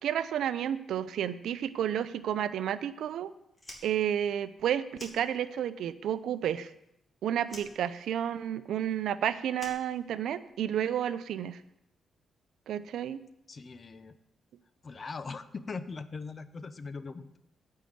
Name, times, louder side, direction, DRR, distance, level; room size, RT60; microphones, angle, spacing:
voice 1, 0.0-3.3 3.8-6.7 7.2-11.6 12.7-13.2, right 10 dB, 80° right, 14 dB, 0.5 m, -31 dB
Fire, 3.5-5.8 6.1-7.1 7.4-10.6, left 1 dB, 25° left, 3.1 m, -50 dB
voice 2, 13.5-14.2 14.8-17.4, left 4 dB, 40° left, 12 dB, 0.8 m, -40 dB
9.2 x 5.6 x 8.1 m, 0.80 s
cardioid pair, 75°, 0 cm